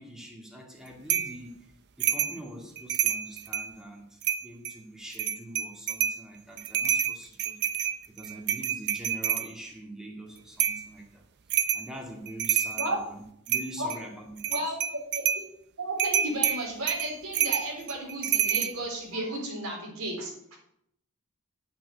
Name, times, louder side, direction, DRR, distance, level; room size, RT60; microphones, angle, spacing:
voice 1, 0.0-1.7 2.0-11.2 11.7-14.6, right 1 dB, ahead, 0 dB, 2.0 m, -44 dB
sound 1, 1.1-1.4 2.0-2.4 2.8-3.7 4.2-4.7 5.1-6.2 6.6-9.5 10.6-10.9 11.5-11.9 12.3-13.0 13.5-14.0 14.4-15.5 16.0-18.7, right 9 dB, 55° right, 0.6 m, -28 dB
voice 2, 15.8-20.6, right 1 dB, 90° right, 0 dB, 3.8 m, -33 dB
9.0 x 5.9 x 8.4 m, 0.72 s
head